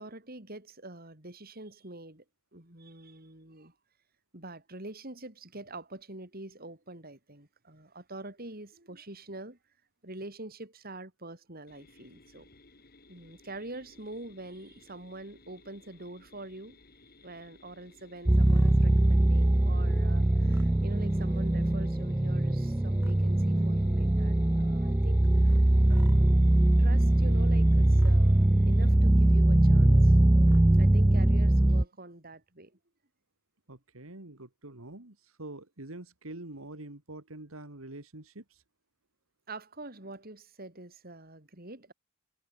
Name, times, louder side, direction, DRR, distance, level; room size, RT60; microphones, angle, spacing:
voice 1, 0.0-2.2 2.5-3.7 4.3-9.6 10.0-12.5 13.1-16.8 17.2-25.5 25.9-26.4 26.8-30.2 30.8-32.7 39.5-41.9, right 2 dB, 45° right, 4.9 m, -45 dB
sound 1, 11.7-28.9, left 2 dB, 45° left, 3.4 m, -58 dB
sound 2, 18.3-31.8, right 1 dB, 10° right, 0.4 m, -22 dB
voice 2, 33.7-38.6, right 2 dB, 75° right, 2.5 m, -45 dB
head